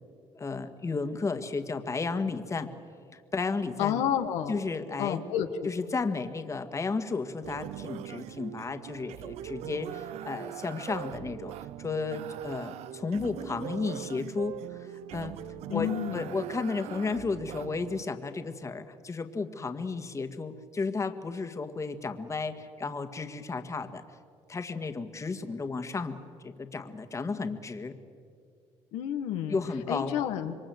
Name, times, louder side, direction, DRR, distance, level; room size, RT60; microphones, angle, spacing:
voice 1, 0.3-2.7 3.1-4.0 4.5-5.2 5.6-11.5 11.8-15.3 15.7-24.0 24.5-26.2 26.4-28.0 29.5-30.2, left 4 dB, 25° left, 8 dB, 1.8 m, -33 dB
voice 2, 3.8-4.6 5.0-5.5 15.7-16.3 28.9-29.6 29.9-30.6, left 10 dB, 85° left, 6 dB, 1.6 m, -30 dB
sound 1, 7.4-18.0, right 14 dB, 75° right, 0.6 m, -41 dB
27.0 x 23.0 x 7.9 m, 2.2 s
cardioid pair, 95°, 11 cm